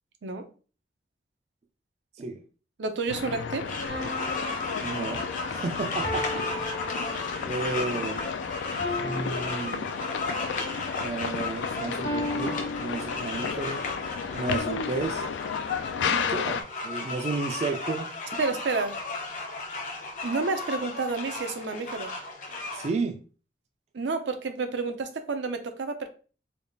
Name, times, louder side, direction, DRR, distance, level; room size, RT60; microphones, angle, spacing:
voice 1, 2.8-3.7 18.4-19.0 20.2-22.1 23.9-26.1, right 4 dB, 85° right, 0.6 m, -30 dB
sound 1, 3.1-16.6, left 6 dB, 90° left, 0.3 m, -33 dB
sound 2, 3.6-22.9, left 3 dB, 45° left, 0.7 m, -35 dB
sound 3, 3.9-7.6 8.8-10.4 12.0-13.6, left 1 dB, 70° left, 1.1 m, -36 dB
voice 2, 4.8-6.5 6.9-8.2 9.0-9.9 11.0-13.8 14.3-15.2 16.0-18.4 22.7-23.2, right 3 dB, 40° right, 0.3 m, -33 dB
3.4 x 2.3 x 3.9 m
head